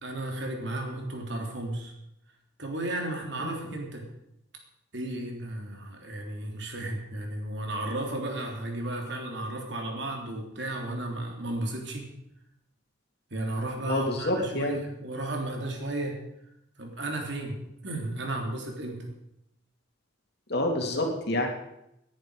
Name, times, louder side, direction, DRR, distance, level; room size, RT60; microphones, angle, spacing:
voice 1, 0.0-1.9 2.6-4.1 4.9-12.1 13.3-16.2 16.8-19.1, right 1 dB, 65° right, 2 dB, 3.4 m, -34 dB
voice 2, 3.4-3.7 13.9-14.8 20.5-21.5, left 1 dB, 60° left, 2 dB, 2.9 m, -28 dB
18.5 x 10.5 x 5.1 m, 0.80 s
head